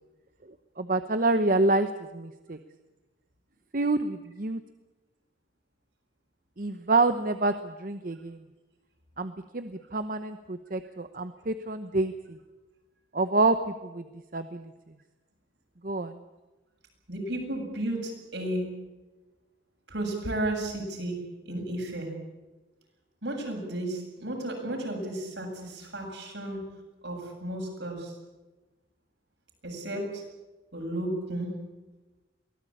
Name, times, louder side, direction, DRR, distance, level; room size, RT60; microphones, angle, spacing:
voice 1, 0.8-2.6 3.7-4.6 6.6-8.4 9.2-12.4 13.1-14.0 14.3-14.7 15.8-16.2, right 2 dB, 45° right, 9 dB, 1.0 m, -27 dB
voice 2, 17.1-18.7 19.9-21.2 21.4-22.1 23.2-26.6 27.0-28.2 29.6-30.2 30.7-31.6, right 1 dB, 65° right, 1 dB, 7.8 m, -33 dB
23.5 x 18.5 x 8.7 m, 1.1 s
head